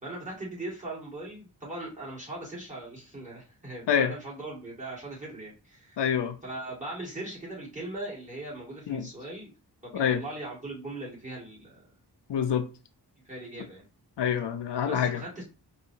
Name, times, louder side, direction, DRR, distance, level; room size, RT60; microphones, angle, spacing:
voice 1, 0.0-6.0 6.4-9.5 9.8-11.9 13.2-13.8 14.9-15.4, right 2 dB, 20° right, 2.2 m, -39 dB
voice 2, 6.0-6.4 8.9-9.1 9.9-10.2 12.3-12.6 14.2-15.2, left 8 dB, 80° left, 0.6 m, -26 dB
4.8 x 2.6 x 2.8 m
wide cardioid pair, 115°, 41 cm